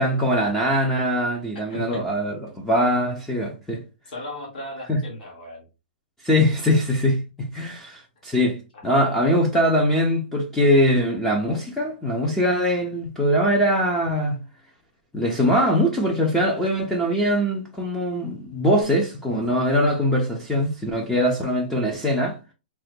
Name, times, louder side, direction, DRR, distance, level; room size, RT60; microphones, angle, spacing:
voice 1, 0.0-3.8 4.9-5.0 6.2-14.4 15.1-22.4, equal, 5° left, 0.3 m, -22 dB
voice 2, 1.7-2.0 4.1-5.7 8.7-8.8, left 1 dB, 55° left, 1.4 m, -36 dB
3.2 x 2.0 x 3.1 m
hypercardioid pair, 170°, 6 cm